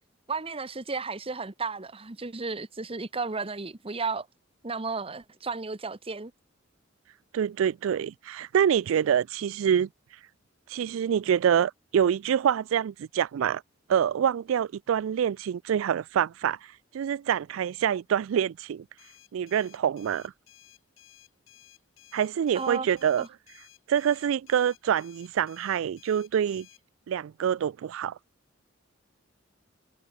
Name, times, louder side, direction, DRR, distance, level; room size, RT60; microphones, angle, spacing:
voice 1, 0.3-4.3 4.6-6.3 22.5-22.9 23.2-23.3, right 4 dB, 30° right, 1.0 m, -33 dB
voice 2, 7.3-9.9 10.7-13.6 13.9-18.8 19.3-20.3 22.1-23.3 23.9-26.7 27.1-28.2, right 8 dB, 85° right, 0.3 m, -26 dB
sound 1, 19.0-26.8, left 11 dB, 90° left, 6.9 m, -56 dB
head